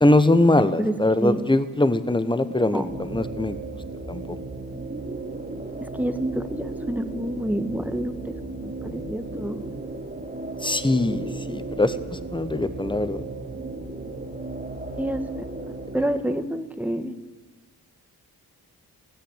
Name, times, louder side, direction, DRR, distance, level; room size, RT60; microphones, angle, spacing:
voice 1, 0.0-3.6 4.1-4.4 10.6-13.2, left 2 dB, 15° left, 12 dB, 1.3 m, -22 dB
voice 2, 0.6-0.9 1.2-1.4 2.6-2.9 6.0-9.6 15.0-15.4 15.9-17.1, right 1 dB, 5° right, 9 dB, 1.6 m, -28 dB
sound 1, 2.9-16.1, right 2 dB, 20° right, 3.1 m, -35 dB
19.5 x 16.0 x 8.3 m, 1.3 s
wide cardioid pair, 95°, 37 cm